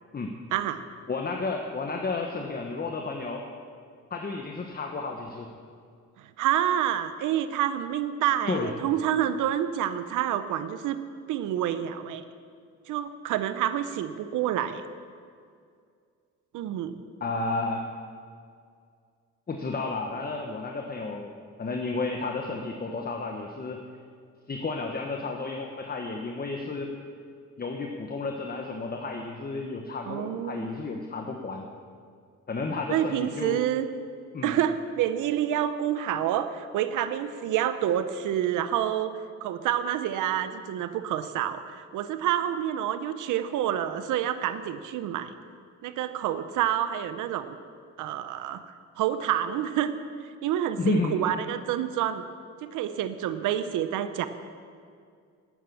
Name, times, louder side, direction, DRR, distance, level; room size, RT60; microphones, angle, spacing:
voice 1, 0.5-0.8 6.2-11.0 11.3-12.3 12.9-14.8 16.5-17.0 30.1-30.7 32.9-33.9 34.4-45.4 45.8-47.6 48.0-48.6 49.0-49.9 50.4-52.2 52.6-54.3, right 11 dB, 85° right, 11 dB, 0.8 m, -28 dB
voice 2, 1.1-3.4 4.1-5.5 8.5-8.7 17.2-17.8 19.5-21.3 21.6-23.8 24.5-26.9 27.6-31.7 32.5-33.6 34.3-34.5 50.8-51.2, left 3 dB, 30° left, 3 dB, 1.2 m, -32 dB
12.5 x 9.7 x 7.0 m, 2.2 s
cardioid pair, 90°, 30 cm